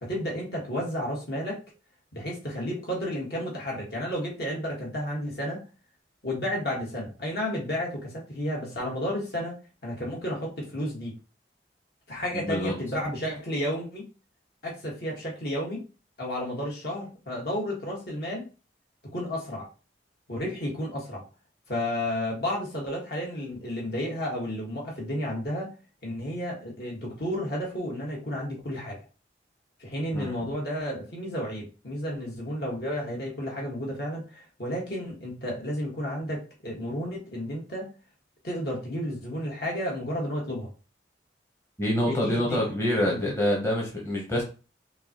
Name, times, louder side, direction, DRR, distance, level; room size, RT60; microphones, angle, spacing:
voice 1, 0.0-1.6 2.1-5.6 6.2-9.6 9.8-11.2 12.1-14.0 14.6-15.8 16.2-18.5 19.1-19.7 20.3-21.2 21.7-25.7 26.0-29.0 29.8-37.9 38.4-40.7 42.1-42.7 43.0-43.2, equal, 55° left, -2 dB, 1.4 m, -32 dB
voice 2, 12.3-12.7 30.1-30.3 41.8-44.4, left 1 dB, 15° left, -2 dB, 0.8 m, -26 dB
5.3 x 2.2 x 2.9 m, 0.34 s
head